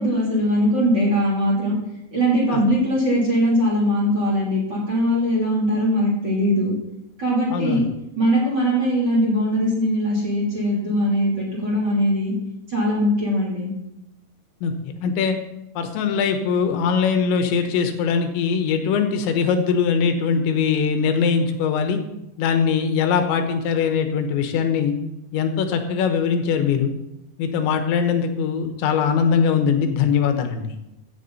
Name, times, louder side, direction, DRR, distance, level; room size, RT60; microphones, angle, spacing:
voice 1, 0.0-1.7 2.1-6.7 7.2-7.8 8.2-12.3 12.7-13.7, equal, 25° right, -6 dB, 3.2 m, -21 dB
voice 2, 7.5-7.9 14.6-15.4 15.8-22.0 22.4-24.9 25.3-26.9 27.4-30.6, left 6 dB, 85° left, 7 dB, 3.4 m, -21 dB
15.5 x 7.2 x 4.1 m, 0.89 s
omnidirectional pair, 5.1 m